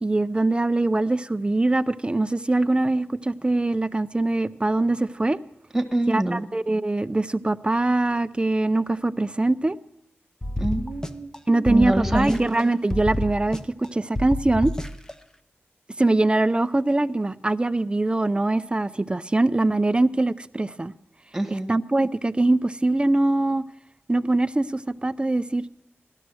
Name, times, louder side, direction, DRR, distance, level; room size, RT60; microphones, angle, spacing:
voice 1, 0.0-5.4 6.1-9.8 11.5-14.7 16.0-20.9 21.5-23.6 24.1-25.6, right 2 dB, 25° right, 14 dB, 0.5 m, -23 dB
voice 2, 5.7-6.5 10.6-11.3 11.7-12.4 21.3-21.7, right 1 dB, 5° right, 6 dB, 1.5 m, -25 dB
sound 1, 10.4-11.4 11.7-12.6 12.9-13.9 14.2-15.1, left 1 dB, 15° left, 0.7 m, -29 dB
17.5 x 12.5 x 6.2 m, 0.85 s
wide cardioid pair, 80°, 4 cm